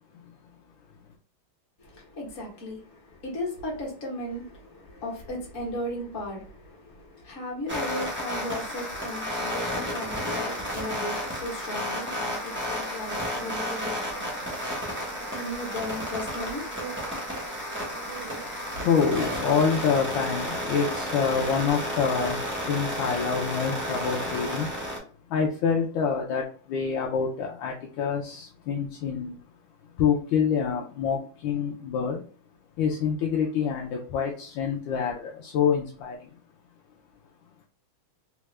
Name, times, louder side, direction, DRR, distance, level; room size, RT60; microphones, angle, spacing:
voice 1, 1.8-14.0 15.3-16.7, left 1 dB, 45° left, 1.2 m, -36 dB
sound 1, 7.7-25.0, equal, 15° right, 0.3 m, -32 dB
sound 2, 12.8-19.5, right 8 dB, 85° right, 1.4 m, -44 dB
voice 2, 17.4-29.4 29.9-32.2 32.8-36.4, left 6 dB, 75° left, 1.2 m, -27 dB
3.5 x 2.3 x 3.1 m
omnidirectional pair, 2.3 m